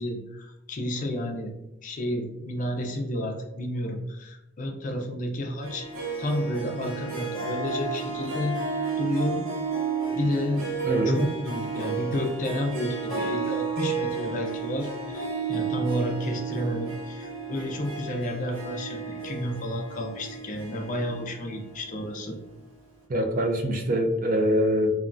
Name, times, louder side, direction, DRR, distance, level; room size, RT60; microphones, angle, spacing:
voice 1, 0.0-1.5 1.8-5.9 6.2-8.6 9.0-9.5 10.1-10.7 11.0-22.4, left 1 dB, 40° left, 2 dB, 0.5 m, -31 dB
Harp, 5.6-22.4, right 5 dB, 80° right, 0.7 m, -32 dB
voice 2, 10.8-11.3 23.1-24.9, equal, 45° right, 3 dB, 0.4 m, -24 dB
3.3 x 2.2 x 2.5 m, 0.89 s
head